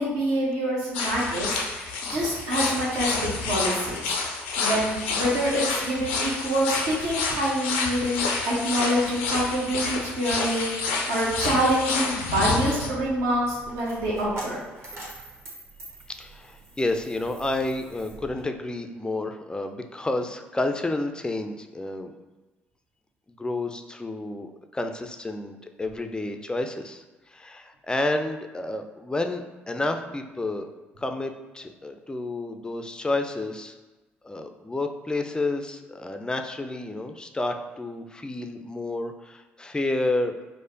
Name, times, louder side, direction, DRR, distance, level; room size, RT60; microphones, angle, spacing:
voice 1, 0.0-3.2 3.4-14.6, right 1 dB, 60° right, -6 dB, 0.8 m, -26 dB
sound 1, 0.9-12.9, left 4 dB, 75° left, 0.4 m, -29 dB
Coin (dropping), 12.7-18.4, right 2 dB, 45° right, 1.1 m, -44 dB
voice 2, 16.2-22.1 23.3-27.0 27.3-30.7 31.0-33.7 34.2-40.4, left 2 dB, 15° left, 6 dB, 0.4 m, -30 dB
4.8 x 2.1 x 2.6 m, 1.1 s
figure-of-eight pair, 50°, 6 cm